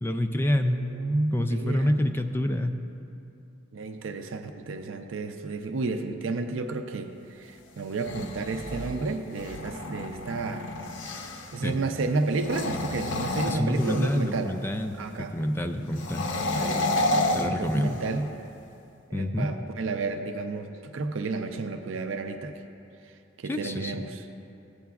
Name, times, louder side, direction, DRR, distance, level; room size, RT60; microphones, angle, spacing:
voice 1, 0.0-0.9 1.3-2.8 11.6-11.8 13.4-16.3 17.3-18.0 19.1-19.5 23.5-24.0, left 1 dB, 10° left, 6 dB, 0.3 m, -27 dB
voice 2, 0.6-1.9 3.7-10.7 11.5-14.5 15.0-15.3 16.6-18.3 19.1-22.6 23.4-24.2, right 3 dB, 85° right, 7 dB, 0.5 m, -31 dB
sound 1, 7.8-11.6 12.3-14.4 15.9-18.2, left 2 dB, 70° left, 0.7 m, -30 dB
15.0 x 8.4 x 2.3 m, 2.7 s
head